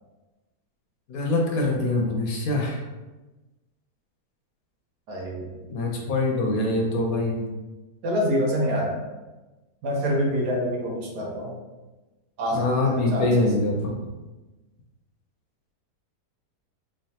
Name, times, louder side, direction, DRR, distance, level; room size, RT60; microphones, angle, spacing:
voice 1, 1.1-2.8 5.7-7.5 12.5-14.1, left 2 dB, 65° left, 0 dB, 1.1 m, -24 dB
voice 2, 5.1-5.5 8.0-9.0 9.8-11.5 12.4-13.5, equal, 80° right, -2 dB, 1.5 m, -26 dB
3.7 x 3.3 x 2.8 m, 1.1 s
omnidirectional pair, 1.7 m